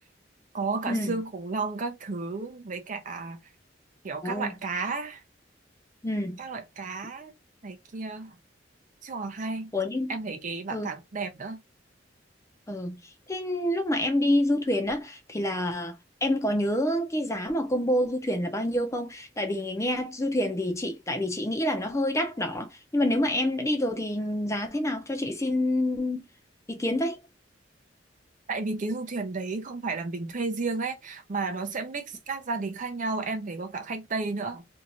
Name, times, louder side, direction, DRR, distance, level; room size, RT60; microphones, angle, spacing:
voice 1, 0.5-3.4 4.0-5.2 6.4-7.3 7.6-8.4 9.0-9.7 10.1-11.6 28.5-34.7, right 3 dB, 45° right, 0.6 m, -32 dB
voice 2, 6.0-6.4 9.7-10.1 10.7-10.9 12.7-13.0 13.3-26.3 26.7-27.2, left 1 dB, 15° left, 0.6 m, -27 dB
2.7 x 2.4 x 2.9 m
head